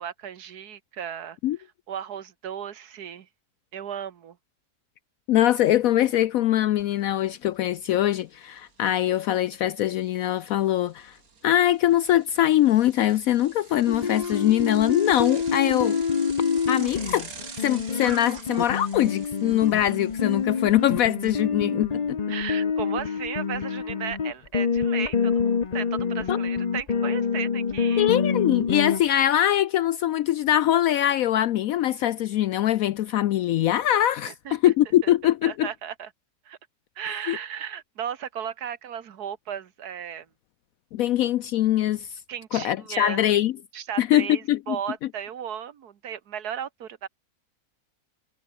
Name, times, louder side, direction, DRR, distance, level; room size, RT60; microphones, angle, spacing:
voice 1, 0.0-1.4 1.9-3.3 3.7-4.4 22.3-28.1 34.2-34.6 35.0-35.1 35.4-36.1 36.4-36.6 37.0-40.3 42.3-43.2 43.7-47.1, right 9 dB, 85° right, 1.7 m, -35 dB
voice 2, 5.3-11.2 11.4-16.0 16.7-17.3 17.6-22.2 26.3-26.4 28.0-35.7 37.3-37.4 40.9-42.2 42.5-43.6 44.0-44.8, left 12 dB, 70° left, 1.0 m, -22 dB
Bicycle, 6.8-6.9 7.3-21.0, right 5 dB, 65° right, 2.8 m, -46 dB
sound 1, 13.9-29.0, left 6 dB, 35° left, 0.7 m, -27 dB
omnidirectional pair, 1.6 m